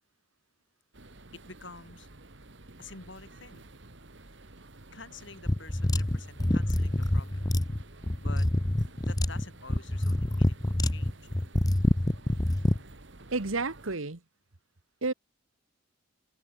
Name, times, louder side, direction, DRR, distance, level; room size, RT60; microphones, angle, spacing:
sound 1, 0.9-14.0, right 2 dB, 60° right, 2.1 m, -51 dB
voice 1, 1.3-2.1 2.8-3.7 4.9-7.6 8.2-8.5 9.0-11.2, left 3 dB, 60° left, 4.8 m, -48 dB
sound 2, 5.5-12.8, left 1 dB, 20° left, 0.8 m, -26 dB
voice 2, 13.3-14.2 15.0-15.1, right 3 dB, 80° right, 1.6 m, -30 dB
head